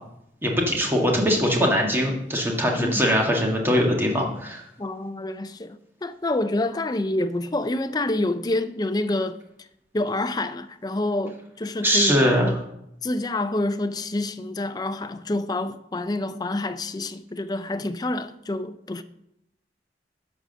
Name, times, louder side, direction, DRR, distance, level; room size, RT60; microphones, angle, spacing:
voice 1, 0.4-4.6 11.8-12.5, equal, 15° right, 1.7 m, -21 dB
voice 2, 4.8-9.4 9.9-12.6 13.0-19.0, left 2 dB, 25° left, 0.4 m, -27 dB
11.5 x 4.9 x 6.6 m
head